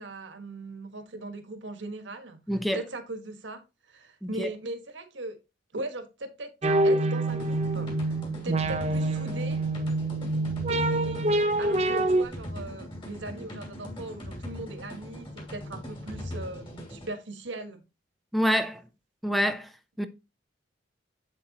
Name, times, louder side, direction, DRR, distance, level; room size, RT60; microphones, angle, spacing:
voice 1, 0.0-2.4 2.7-3.6 3.9-5.4 5.7-6.5 6.8-8.2 8.4-9.6 10.7-11.3 11.6-17.8, right 2 dB, 75° right, 1.6 m, -39 dB
voice 2, 2.5-2.8 4.4-4.5 18.3-18.8 19.2-19.7 20.0-20.1, equal, ahead, 0.6 m, -26 dB
sound 1, 6.6-12.3, right 2 dB, 35° right, 0.8 m, -26 dB
sound 2, 7.3-17.1, equal, 30° left, 2.7 m, -41 dB
7.7 x 7.7 x 2.9 m
head